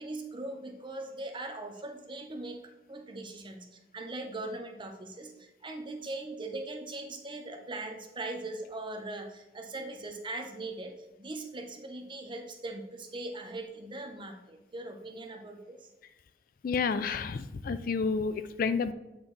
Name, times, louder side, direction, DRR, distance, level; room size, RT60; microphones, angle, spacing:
voice 1, 0.0-2.6 2.9-3.7 3.9-15.9, right 2 dB, 30° right, 4 dB, 0.8 m, -40 dB
voice 2, 16.6-18.9, left 5 dB, 55° left, 12 dB, 0.4 m, -30 dB
7.9 x 4.4 x 3.3 m, 0.98 s
head